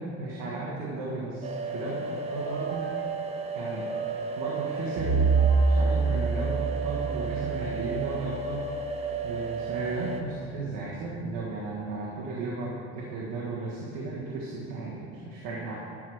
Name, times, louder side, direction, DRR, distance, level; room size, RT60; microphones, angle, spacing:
voice 1, 0.0-2.8 3.5-3.9 4.3-5.3 5.6-8.7 9.2-15.7, right 3 dB, 75° right, -5 dB, 1.6 m, -35 dB
sound 1, 1.4-10.2, right 4 dB, 20° right, 0.4 m, -34 dB
sound 2, 2.1-7.4, right 2 dB, 25° left, 2.0 m, -44 dB
Bowed string instrument, 5.0-9.2, right 4 dB, 50° right, 1.7 m, -26 dB
11.5 x 4.8 x 6.4 m, 2.6 s
cardioid pair, 180°, 31 cm